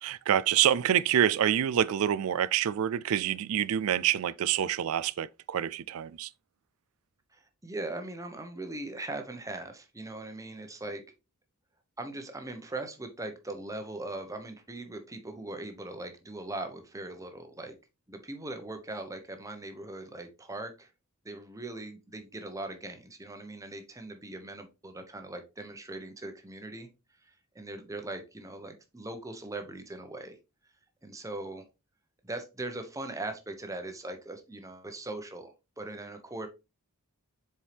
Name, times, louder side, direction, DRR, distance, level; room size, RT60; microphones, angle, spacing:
voice 1, 0.0-6.3, right 10 dB, 70° right, 0.3 m, -27 dB
voice 2, 7.3-11.0 12.0-17.7 18.1-20.9 21.2-26.9 27.2-30.4 31.0-31.7 32.2-36.5, right 2 dB, 15° right, 1.0 m, -40 dB
7.2 x 4.5 x 3.3 m
head